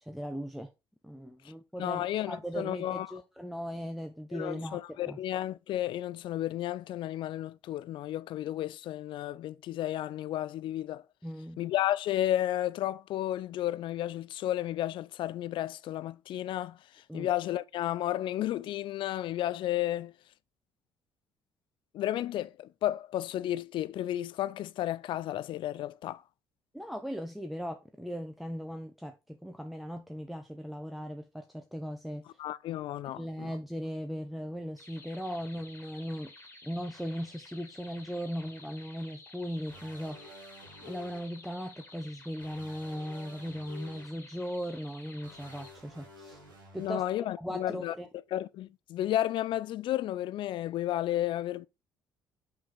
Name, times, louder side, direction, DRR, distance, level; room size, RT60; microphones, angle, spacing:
voice 1, 0.0-0.7 1.0-4.8 5.1-5.2 11.2-11.6 17.1-17.3 26.7-32.2 33.2-36.3 36.6-40.2 40.8-46.4 46.7-47.0 47.4-48.1, equal, ahead, 0.8 m, -38 dB
voice 2, 1.8-3.1 4.3-11.0 11.6-16.8 17.1-20.1 21.9-26.2 32.4-33.5 46.8-47.9 48.3-51.7, left 13 dB, 50° left, 0.4 m, -32 dB
sound 1, 34.8-45.7, left 2 dB, 20° left, 2.2 m, -52 dB
sound 2, 39.7-41.2 42.4-44.0 45.2-46.9, left 2 dB, 85° right, 1.8 m, -51 dB
5.9 x 4.9 x 4.2 m
figure-of-eight pair, 55°, 10 cm